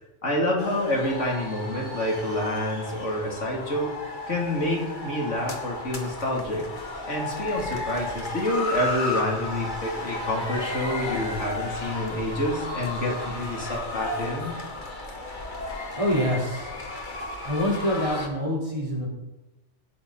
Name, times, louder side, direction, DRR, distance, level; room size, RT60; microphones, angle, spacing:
voice 1, 0.2-3.9 4.3-6.6 7.1-14.5, left 1 dB, 85° left, -2 dB, 3.2 m, -28 dB
sound 1, 0.6-18.3, left 2 dB, 40° left, 1.8 m, -34 dB
voice 2, 16.0-16.8 17.4-19.1, equal, 25° right, -4 dB, 3.7 m, -26 dB
17.5 x 8.6 x 4.1 m, 1.0 s
omnidirectional pair, 1.2 m